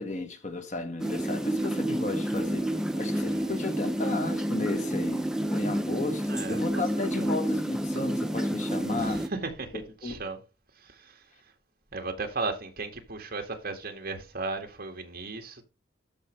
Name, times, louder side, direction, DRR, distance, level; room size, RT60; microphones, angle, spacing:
voice 1, 0.0-9.2 10.0-10.2, left 2 dB, 40° left, 1.4 m, -34 dB
sound 1, 1.0-9.3, right 1 dB, 5° right, 0.6 m, -29 dB
voice 2, 3.1-3.5 6.3-6.8 7.2-7.3 9.0-10.4 10.8-11.2 11.9-15.6, right 3 dB, 50° right, 1.9 m, -36 dB
13.5 x 5.0 x 3.3 m
head